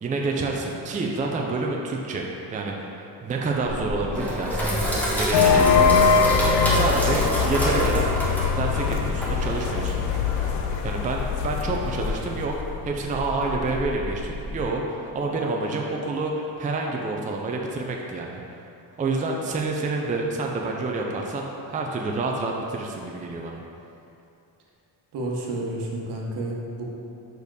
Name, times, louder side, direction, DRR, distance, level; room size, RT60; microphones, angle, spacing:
voice 1, 0.0-4.7 5.2-5.9 6.7-8.1 8.5-10.4 10.8-12.5 12.8-18.6 19.0-23.6, right 3 dB, 20° right, 0 dB, 0.5 m, -28 dB
Sink (filling or washing), 3.6-14.6, equal, 5° left, 1.2 m, -28 dB
sound 1, 5.3-12.8, left 6 dB, 85° left, 0.5 m, -23 dB
voice 2, 25.1-26.9, right 1 dB, 70° right, -2 dB, 1.2 m, -30 dB
5.3 x 4.5 x 4.7 m, 2.7 s
cardioid pair, 130°, 42 cm